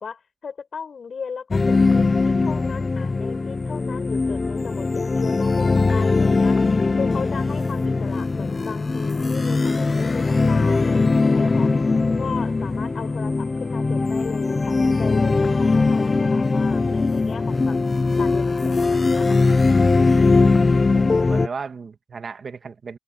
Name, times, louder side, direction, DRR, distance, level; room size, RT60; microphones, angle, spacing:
voice 1, 0.0-6.6 7.0-11.1 11.4-11.7 12.2-17.8 18.2-19.4, left 6 dB, 60° left, 5.6 m, -36 dB
sound 1, 1.5-21.5, left 3 dB, 35° left, 0.5 m, -20 dB
voice 2, 20.9-23.0, right 5 dB, 50° right, 1.9 m, -35 dB
wide cardioid pair, 110°, 0 cm